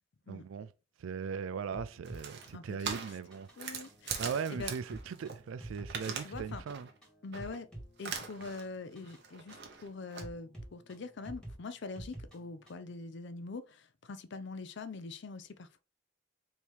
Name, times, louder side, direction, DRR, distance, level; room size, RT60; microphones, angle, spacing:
voice 1, 0.3-0.7 1.0-3.5 4.2-6.9, right 6 dB, 85° right, 0.4 m, -39 dB
sound 1, 1.7-12.9, right 1 dB, 5° left, 1.6 m, -50 dB
sound 2, 2.0-5.4 5.6-6.4 6.7-7.0 7.3-7.6 8.0-8.6 8.9-10.2, right 6 dB, 60° right, 0.9 m, -41 dB
voice 2, 2.5-2.9 3.6-4.7 6.1-6.6 7.2-7.7 8.0-15.8, left 3 dB, 60° left, 0.5 m, -44 dB
4.5 x 2.9 x 3.3 m
head